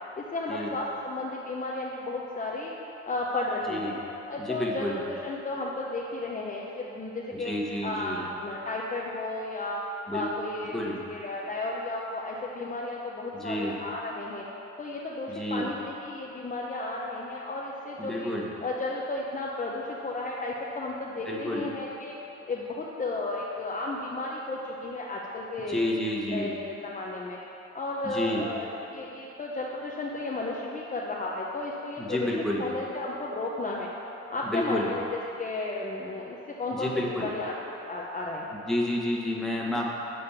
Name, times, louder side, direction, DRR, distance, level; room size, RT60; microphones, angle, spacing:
voice 1, 0.2-2.7 3.1-3.9 4.3-7.5 7.8-9.8 10.1-14.4 14.8-18.3 18.6-22.1 22.5-25.9 26.3-27.4 27.7-32.3 32.6-33.9 34.3-35.0 35.4-37.5 37.9-38.6, left 2 dB, 25° left, -3 dB, 0.8 m, -33 dB
voice 2, 3.7-4.0 4.4-5.0 7.4-8.3 10.1-10.3 10.7-11.0 13.4-13.8 15.3-15.6 18.0-18.5 21.2-21.6 25.7-26.5 28.0-28.5 32.0-32.7 34.4-34.9 36.7-37.3 38.7-39.9, left 1 dB, ahead, -3 dB, 1.4 m, -30 dB
6.9 x 5.0 x 7.1 m, 3.0 s
cardioid pair, 90°, 30 cm